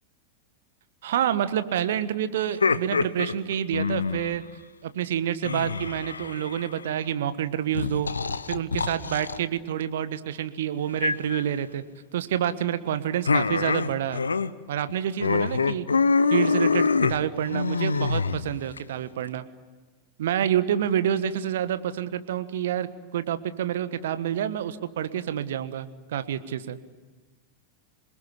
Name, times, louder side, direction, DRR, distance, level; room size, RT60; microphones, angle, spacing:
voice 1, 1.0-4.4 4.8-8.1 8.5-11.8 12.1-14.2 14.7-15.9 16.3-19.4 20.2-26.8, right 10 dB, 60° right, 12 dB, 1.4 m, -28 dB
sound 1, 2.4-4.4 5.4-6.8 7.7-9.4 11.0-11.4 13.3-14.5 14.8-14.9 15.2-18.8, left 4 dB, 75° left, 0.9 m, -25 dB
27.5 x 21.0 x 9.7 m, 1.3 s
figure-of-eight pair, 90°, 0 cm